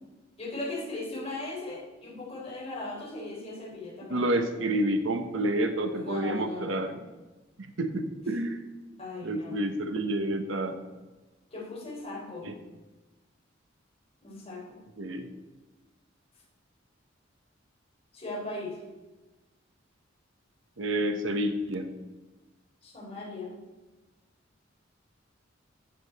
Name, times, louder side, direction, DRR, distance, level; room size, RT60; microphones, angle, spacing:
voice 1, 0.4-4.3 5.9-7.0 9.0-9.6 11.5-12.5 14.2-14.8 18.1-18.8 22.8-23.5, left 2 dB, 30° left, -4 dB, 3.7 m, -38 dB
voice 2, 4.1-7.0 7.6-8.6 9.2-10.8 12.4-12.5 15.0-15.3 20.8-21.9, right 1 dB, 75° right, 7 dB, 1.0 m, -29 dB
14.5 x 7.1 x 4.1 m, 1.2 s
head